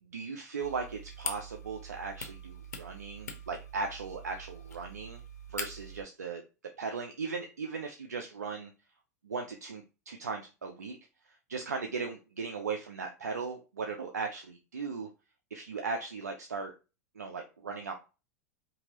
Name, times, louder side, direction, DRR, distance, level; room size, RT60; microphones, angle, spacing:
voice 1, 0.0-5.2 5.5-6.4 6.8-8.7 9.2-11.0 11.3-15.1 15.5-16.7 17.2-17.9, right 4 dB, 90° right, 3 dB, 0.4 m, -37 dB
sound 1, 0.6-6.0, left 1 dB, 85° left, 0.6 m, -43 dB
2.8 x 2.6 x 2.8 m, 0.30 s
hypercardioid pair, 95°, 9 cm